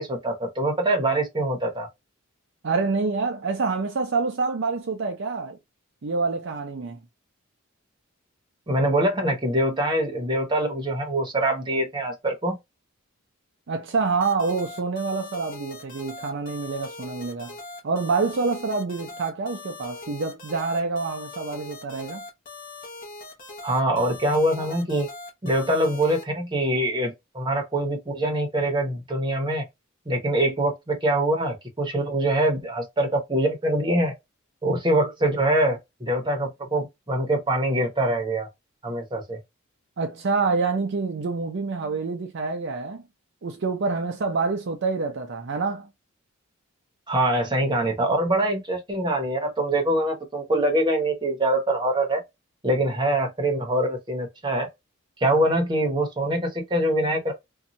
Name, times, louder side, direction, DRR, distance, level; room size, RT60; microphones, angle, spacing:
voice 1, 0.0-1.9 8.7-12.6 23.6-25.1 25.4-29.6 30.1-34.1 34.6-38.5 38.8-39.4 47.1-52.2 52.6-54.7 55.2-57.3, right 1 dB, 20° right, 0.9 m, -24 dB
voice 2, 2.6-5.6 6.0-7.0 13.7-17.5 17.8-22.2 40.0-43.0 43.4-45.9, right 4 dB, 55° right, 0.5 m, -27 dB
sound 1, 14.2-26.2, left 3 dB, 40° left, 0.8 m, -41 dB
2.6 x 2.3 x 2.8 m
head